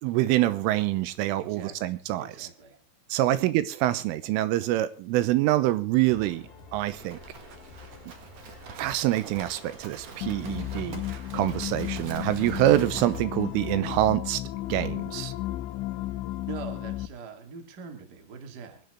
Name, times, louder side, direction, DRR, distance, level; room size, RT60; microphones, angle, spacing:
voice 1, 0.0-2.5 3.1-7.2 8.7-14.4 14.7-15.3, right 15 dB, 85° right, 14 dB, 3.4 m, -26 dB
voice 2, 1.4-2.8 3.2-3.4 16.5-18.8, right 5 dB, 40° right, 5 dB, 1.4 m, -43 dB
sound 1, 6.0-13.8, left 4 dB, 15° left, 2.1 m, -50 dB
Livestock farm animals working animals, 6.7-13.2, right 5 dB, 65° right, 1.6 m, -45 dB
sound 2, 10.2-17.1, left 15 dB, 80° left, 2.9 m, -34 dB
24.0 x 10.5 x 3.6 m, 0.35 s
omnidirectional pair, 5.7 m